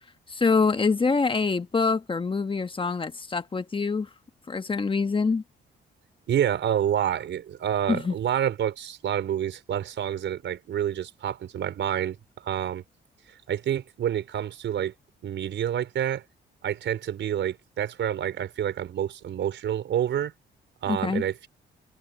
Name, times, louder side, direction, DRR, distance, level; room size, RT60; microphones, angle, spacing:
voice 1, 0.3-4.1 4.5-5.4 7.9-8.1 20.9-21.2, left 4 dB, 25° left, 1.2 m, -25 dB
voice 2, 6.3-12.8 13.5-14.9 15.2-16.2 16.6-20.3 20.8-21.5, right 10 dB, 70° right, 4.7 m, -28 dB
cardioid pair, 90°, 20 cm